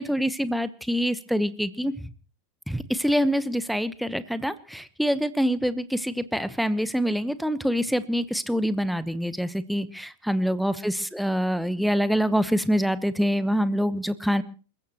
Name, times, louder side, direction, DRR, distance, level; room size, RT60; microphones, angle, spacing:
voice 1, 0.0-2.1 2.7-14.4, equal, ahead, 15 dB, 1.1 m, -25 dB
28.0 x 15.5 x 3.1 m, 0.38 s
figure-of-eight pair, 90°, 0 cm